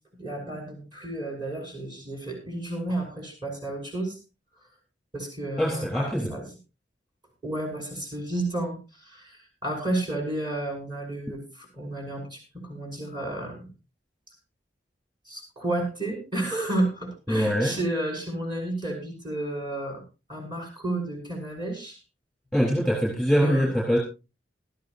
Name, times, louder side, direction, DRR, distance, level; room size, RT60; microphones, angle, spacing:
voice 1, 0.2-4.2 5.1-6.5 7.4-13.7 15.3-20.0 20.3-22.0 23.4-23.7, right 1 dB, 25° right, 2 dB, 6.2 m, -32 dB
voice 2, 5.6-6.3 17.3-17.8 22.5-24.0, equal, ahead, -2 dB, 3.8 m, -23 dB
19.0 x 13.0 x 2.7 m, 0.29 s
head